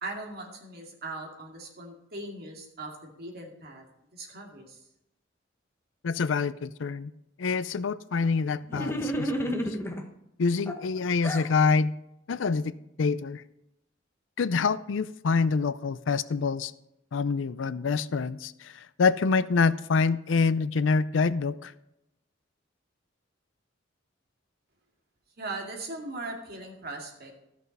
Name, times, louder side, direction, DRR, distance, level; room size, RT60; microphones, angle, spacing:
voice 1, 0.0-3.8 4.1-4.8 25.4-27.3, right 2 dB, 55° right, 1 dB, 2.3 m, -39 dB
voice 2, 6.0-7.1 7.4-9.6 10.4-11.9 12.3-13.4 14.4-16.7 17.1-21.7, left 4 dB, 80° left, 16 dB, 0.5 m, -26 dB
sound 1, 8.7-10.0 10.7-11.5, equal, 15° left, 1.0 m, -31 dB
13.5 x 6.3 x 5.3 m, 0.86 s
head